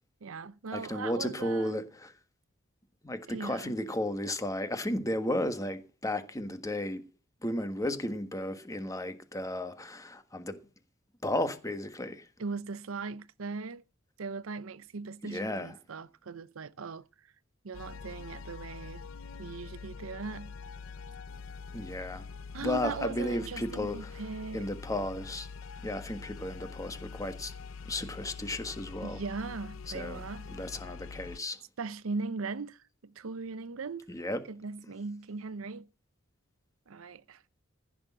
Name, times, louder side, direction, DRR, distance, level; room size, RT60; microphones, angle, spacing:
voice 1, 0.2-1.8 3.3-3.8 12.4-13.8 14.2-17.1 17.6-19.0 19.4-20.5 22.5-24.7 29.0-30.5 31.8-34.1 34.5-35.9 36.9-37.4, right 4 dB, 90° right, 0.7 m, -39 dB
voice 2, 0.7-2.1 3.0-7.0 7.4-10.6 11.2-12.3 15.2-15.7 21.7-22.3 22.6-24.2 24.5-25.5 25.8-27.5 27.9-29.2 29.9-31.6 34.1-34.4, left 1 dB, 15° left, 1.5 m, -34 dB
sound 1, 17.7-31.4, left 5 dB, 75° left, 0.6 m, -44 dB
15.0 x 6.3 x 7.3 m
head